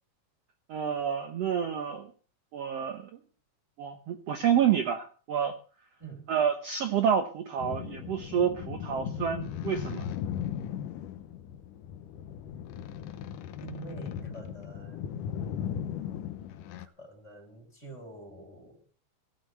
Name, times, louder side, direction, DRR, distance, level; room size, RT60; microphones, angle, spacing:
voice 1, 0.7-2.1 2.5-3.0 3.8-5.6 6.3-10.1, right 8 dB, 60° right, 1.9 m, -28 dB
voice 2, 6.0-6.3 13.6-15.5 16.8-18.8, right 4 dB, 20° left, 3.9 m, -47 dB
sound 1, 7.6-16.9, left 9 dB, 85° left, 2.5 m, -37 dB
16.0 x 6.1 x 9.6 m
omnidirectional pair, 3.7 m